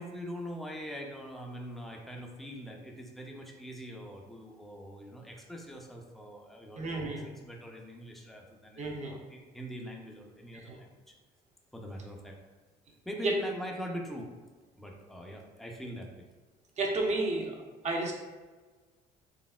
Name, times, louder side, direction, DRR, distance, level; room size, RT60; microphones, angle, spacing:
voice 1, 0.0-11.1 11.7-12.4 13.0-14.3 14.8-16.3, equal, ahead, 0 dB, 0.5 m, -43 dB
voice 2, 6.8-7.3 8.8-9.2 10.7-10.8 13.2-13.3 16.8-17.6 17.8-18.1, right 2 dB, 40° right, 0 dB, 0.8 m, -31 dB
4.0 x 3.4 x 2.3 m, 1.3 s
cardioid pair, 110°, 17 cm